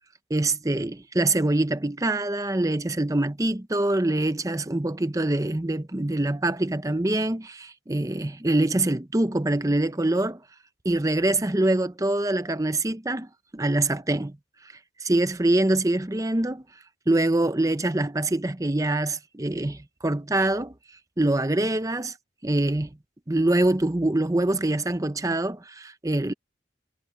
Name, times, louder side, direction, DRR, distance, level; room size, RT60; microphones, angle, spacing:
voice 1, 0.3-10.4 10.8-13.3 13.5-14.4 15.0-16.6 17.1-20.7 21.2-22.1 22.4-22.9 23.3-26.3, right 2 dB, 20° right, 0.7 m, -24 dB
head